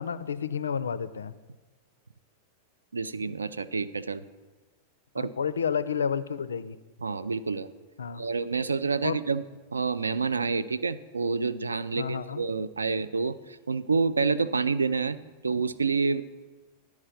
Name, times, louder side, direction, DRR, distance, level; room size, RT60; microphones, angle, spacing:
voice 1, 0.0-1.3 5.2-6.8 8.0-8.2 9.0-9.2 12.0-12.4, left 7 dB, 70° left, 15 dB, 0.3 m, -30 dB
voice 2, 2.9-4.2 5.1-5.3 7.0-7.7 8.2-9.4 9.7-13.4 13.7-15.2 15.4-16.2, right 4 dB, 75° right, 15 dB, 0.3 m, -28 dB
11.0 x 4.7 x 5.6 m, 1.3 s
figure-of-eight pair, 90°, 0 cm